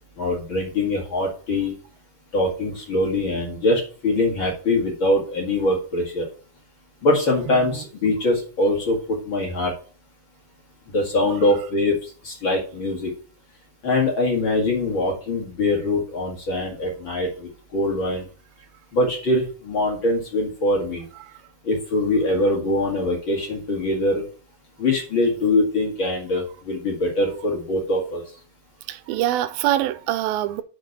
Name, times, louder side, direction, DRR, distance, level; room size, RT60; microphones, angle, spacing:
voice 1, 0.2-1.8 2.3-6.3 7.0-9.7 10.9-13.1 13.8-18.3 18.9-21.1 21.6-24.2 24.8-28.2, left 2 dB, 40° left, 2.4 m, -23 dB
voice 2, 7.4-7.9 11.3-11.6 21.1-21.3 28.9-30.6, right 13 dB, 90° right, 2.5 m, -25 dB
6.5 x 5.9 x 6.0 m
omnidirectional pair, 4.2 m